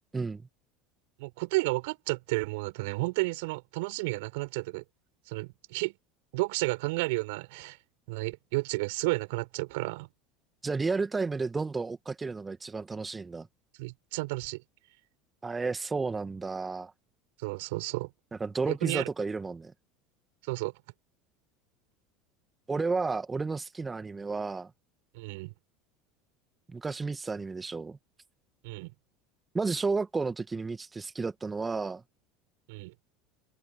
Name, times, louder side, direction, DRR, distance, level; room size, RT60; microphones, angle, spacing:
voice 1, 1.2-4.8 5.3-5.9 6.3-7.8 8.1-10.1 13.8-14.6 17.4-18.1 18.7-19.1 20.5-20.7 25.1-25.5 28.6-28.9 32.7-32.9, right 25 dB, 65° right, 4.8 m, -32 dB
voice 2, 10.6-13.5 15.4-16.9 18.4-19.7 22.7-24.7 26.7-28.0 29.5-32.0, right 4 dB, 20° right, 2.0 m, -32 dB
figure-of-eight pair, 70°, 0 cm